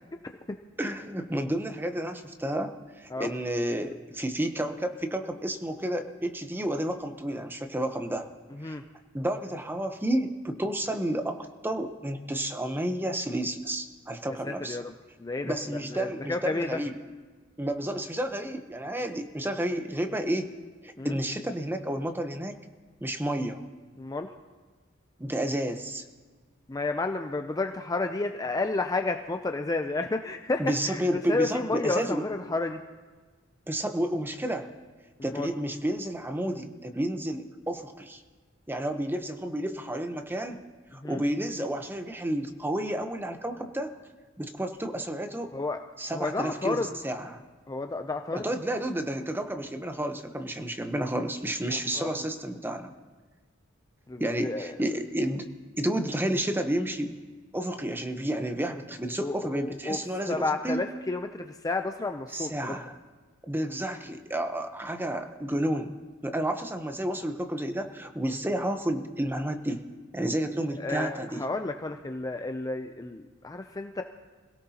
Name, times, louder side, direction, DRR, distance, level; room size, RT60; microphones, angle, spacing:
voice 1, 0.8-8.3 8.6-8.8 9.1-14.8 15.4-16.9 17.6-20.5 20.8-22.6 23.0-23.6 25.2-26.0 30.6-32.2 33.7-34.7 35.2-38.2 38.7-40.6 40.9-43.9 44.4-45.5 46.0-47.4 48.3-52.9 54.2-55.5 55.8-57.2 57.5-60.8 62.3-62.9 63.5-65.9 66.2-69.8 70.1-71.4, right 1 dB, 10° right, 6 dB, 0.9 m, -31 dB
voice 2, 8.5-8.8 14.4-14.9 15.2-15.5 15.9-16.8 21.0-21.2 24.0-24.3 26.7-32.8 35.2-35.5 41.0-41.2 45.5-45.8 46.1-46.9 47.7-48.5 51.7-52.2 54.1-54.7 59.2-60.0 60.3-62.7 70.8-74.0, left 3 dB, 15° left, 5 dB, 0.5 m, -31 dB
26.0 x 17.0 x 2.9 m, 1.4 s
head